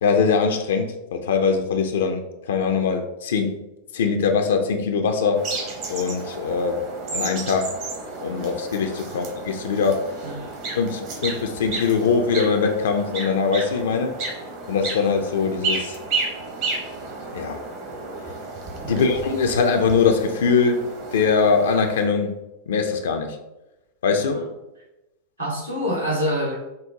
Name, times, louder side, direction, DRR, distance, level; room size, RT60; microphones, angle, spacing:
voice 1, 0.0-3.6 3.9-5.5 5.9-6.8 7.1-7.7 8.2-10.2 10.8-14.1 14.7-16.0 17.3-17.6 18.9-22.4 22.7-23.4 24.0-24.4, left 5 dB, 60° left, 6 dB, 0.3 m, -22 dB
sound 1, 5.4-22.1, right 3 dB, 45° right, 0.8 m, -32 dB
voice 2, 24.1-24.5 25.4-26.5, equal, 85° right, -4 dB, 1.3 m, -26 dB
5.2 x 2.0 x 2.8 m, 0.94 s
figure-of-eight pair, 90°, 0 cm